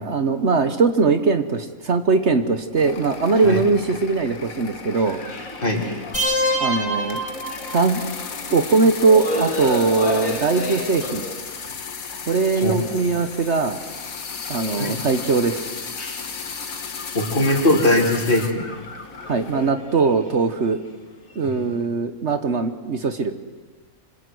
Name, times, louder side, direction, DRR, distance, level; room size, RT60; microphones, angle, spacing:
voice 1, 0.0-5.2 6.6-7.2 7.7-8.0 8.5-11.2 12.3-13.8 14.5-15.7 19.2-20.8 21.3-23.3, right 4 dB, 55° right, 9 dB, 1.4 m, -20 dB
sound 1, 2.7-19.7, left 5 dB, 90° left, 2.0 m, -35 dB
sound 2, 5.0-8.8 9.1-11.9 12.6-12.7 13.6-14.0 14.5-15.2 15.7-21.8, left 1 dB, 75° left, 3.4 m, -33 dB
sound 3, 6.1-8.1, equal, 55° left, 3.9 m, -25 dB
voice 2, 17.1-18.7 21.4-21.6, left 1 dB, 40° left, 1 dB, 3.9 m, -20 dB
27.0 x 26.0 x 7.9 m, 1.3 s
omnidirectional pair, 1.4 m